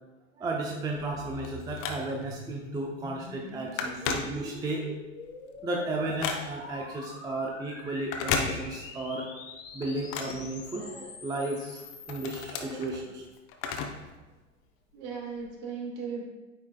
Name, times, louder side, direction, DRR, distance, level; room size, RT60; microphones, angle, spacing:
voice 1, 0.4-4.9 5.6-9.3 9.7-11.8 12.1-13.2, right 2 dB, 10° right, 0 dB, 0.5 m, -34 dB
Telephone, 1.0-2.4 2.9-3.1 3.4-4.9 5.3-6.8 8.0-9.1 9.4-11.2 11.6-14.1 14.4-14.5 15.4-15.5, left 5 dB, 35° left, 0.7 m, -35 dB
sound 1, 1.1-12.5, left 3 dB, 70° left, 1.3 m, -45 dB
voice 2, 4.0-4.3 14.9-16.2, right 5 dB, 50° right, 0 dB, 1.7 m, -37 dB
9.0 x 4.7 x 2.2 m, 1.1 s
figure-of-eight pair, 90°, 39 cm